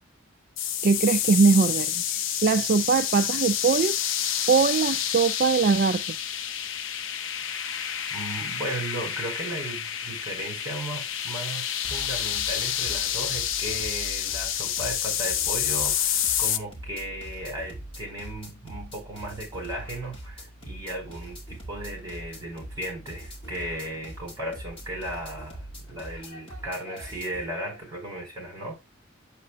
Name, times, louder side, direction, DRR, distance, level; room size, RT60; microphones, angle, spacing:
sound 1, 0.6-16.6, left 10 dB, 65° left, 0.6 m, -29 dB
voice 1, 0.8-3.9 4.5-6.2, right 5 dB, 45° right, 0.3 m, -22 dB
voice 2, 7.5-28.8, right 1 dB, 15° right, 4.3 m, -36 dB
sound 2, 11.8-27.5, right 1 dB, 25° left, 2.5 m, -42 dB
8.2 x 7.5 x 2.3 m
head